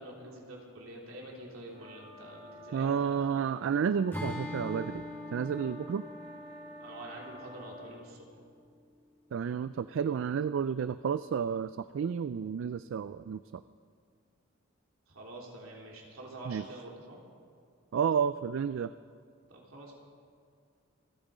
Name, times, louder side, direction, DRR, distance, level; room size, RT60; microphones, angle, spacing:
voice 1, 0.0-3.2 6.8-8.3 15.1-17.2 19.5-19.9, right 1 dB, 85° right, -2 dB, 3.5 m, -46 dB
sound 1, 1.7-7.9, equal, 40° right, 3.0 m, -50 dB
voice 2, 2.7-5.0 5.3-6.0 9.3-13.6 16.5-16.7 17.9-18.9, right 7 dB, 65° right, 14 dB, 0.3 m, -31 dB
Acoustic guitar / Strum, 4.1-8.3, left 1 dB, 10° left, 2.1 m, -42 dB
26.5 x 9.1 x 5.0 m, 2.2 s
head